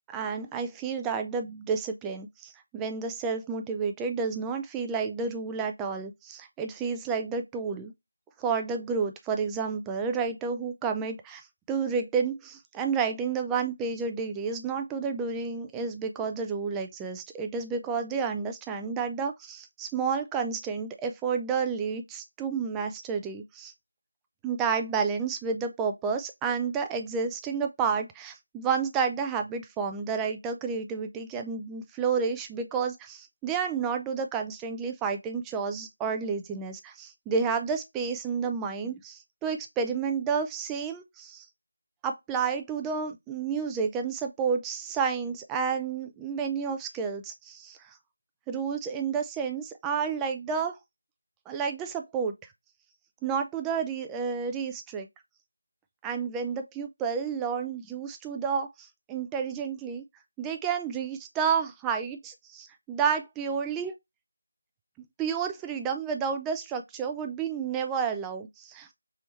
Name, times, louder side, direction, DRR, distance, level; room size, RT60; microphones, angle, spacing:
voice 1, 0.1-7.9 8.4-23.7 24.4-41.4 42.0-47.9 48.5-50.7 51.5-52.3 53.2-55.1 56.0-60.0 60.4-63.9 65.2-68.9, right 6 dB, 10° right, 0.3 m, -30 dB
3.4 x 3.0 x 3.1 m
figure-of-eight pair, 165°, 0 cm